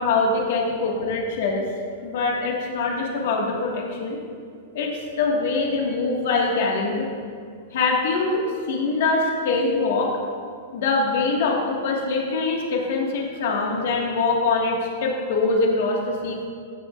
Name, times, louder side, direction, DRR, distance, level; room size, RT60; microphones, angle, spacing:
voice 1, 0.0-1.6 2.0-4.2 4.7-4.9 5.2-7.1 7.7-10.1 10.7-16.4, left 3 dB, 55° left, -1 dB, 1.7 m, -23 dB
15.5 x 7.5 x 2.5 m, 2.2 s
supercardioid pair, 170°, 0 cm